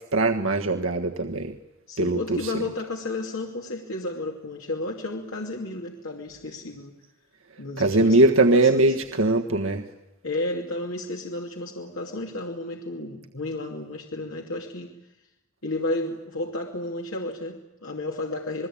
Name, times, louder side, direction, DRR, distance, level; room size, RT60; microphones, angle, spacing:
voice 1, 0.1-1.6 2.0-2.5 7.8-9.8, right 2 dB, 75° right, 4 dB, 1.5 m, -21 dB
voice 2, 1.9-6.9 7.6-8.9 10.2-14.9 15.6-18.7, left 2 dB, 75° left, 0 dB, 2.5 m, -32 dB
28.0 x 21.5 x 8.7 m, 0.97 s
head